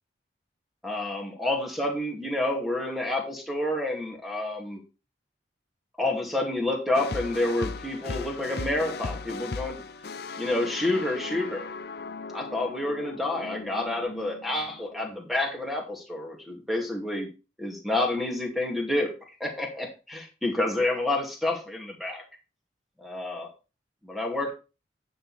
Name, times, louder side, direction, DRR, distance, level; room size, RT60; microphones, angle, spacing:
voice 1, 0.8-4.8 6.0-9.8 10.4-11.7 12.3-17.3 17.6-19.1 19.4-22.2 23.0-23.5 24.0-24.5, left 2 dB, ahead, 1 dB, 2.3 m, -29 dB
sound 1, 6.9-15.1, left 4 dB, 60° left, 0.6 m, -37 dB
10.0 x 6.4 x 4.3 m, 0.31 s
head